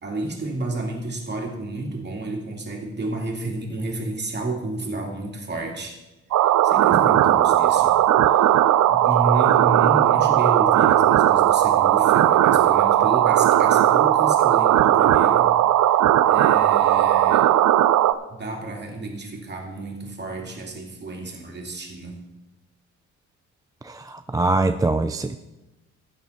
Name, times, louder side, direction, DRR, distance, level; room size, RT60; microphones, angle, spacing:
voice 1, 0.0-6.0 6.4-8.0 8.3-8.6 8.9-15.5 15.9-16.0 16.3-17.5 18.3-22.2, right 2 dB, 35° right, 0 dB, 2.7 m, -31 dB
sound 1, 6.3-18.1, right 12 dB, 65° right, 0.6 m, -17 dB
voice 2, 23.9-25.4, right 2 dB, 10° right, 8 dB, 0.4 m, -23 dB
13.0 x 8.9 x 4.2 m, 1.0 s
cardioid pair, 90°, 30 cm